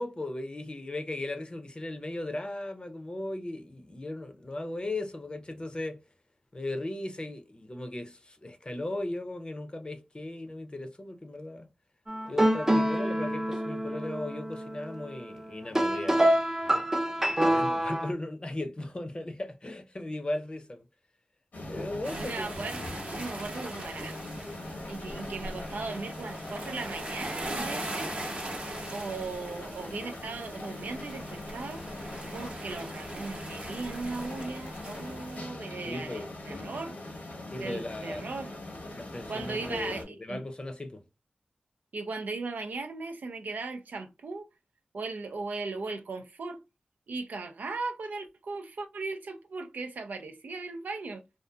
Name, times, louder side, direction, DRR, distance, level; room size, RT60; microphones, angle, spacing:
voice 1, 0.0-6.0 6.5-11.7 12.3-16.5 17.4-20.8 21.7-22.5 35.8-36.3 37.5-38.3 38.9-41.0, left 1 dB, 35° left, 0.6 m, -37 dB
sound 1, 12.1-18.1, right 1 dB, 15° right, 0.4 m, -27 dB
sound 2, 21.5-40.0, left 1 dB, 85° left, 1.0 m, -41 dB
sound 3, 22.0-35.4, right 1 dB, 50° right, 0.8 m, -41 dB
voice 2, 22.1-24.2 24.5-24.6 24.9-28.1 28.9-31.8 32.3-37.0 37.6-38.5 39.3-40.4 41.9-44.5 44.9-46.6 47.1-51.2, right 3 dB, 85° right, 0.4 m, -38 dB
2.6 x 2.3 x 2.3 m
cardioid pair, 50°, 3 cm